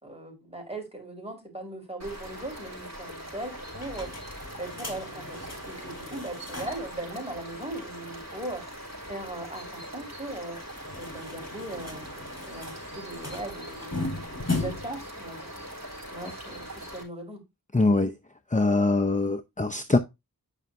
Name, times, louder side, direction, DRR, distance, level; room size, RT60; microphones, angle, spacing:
voice 1, 0.0-4.1 4.6-8.8 9.0-10.6 10.9-12.1 12.4-15.5 16.1-17.4, right 2 dB, 15° right, 4.8 m, -39 dB
sound 1, 2.0-17.0, equal, 45° right, 4.2 m, -42 dB
sound 2, 3.7-7.0 7.3-7.4 7.6-7.7 10.5-15.0, left 2 dB, 45° left, 4.6 m, -37 dB
voice 2, 17.7-18.1 18.5-20.0, left 2 dB, 20° left, 0.7 m, -23 dB
10.0 x 5.8 x 2.7 m
wide cardioid pair, 40°, 36 cm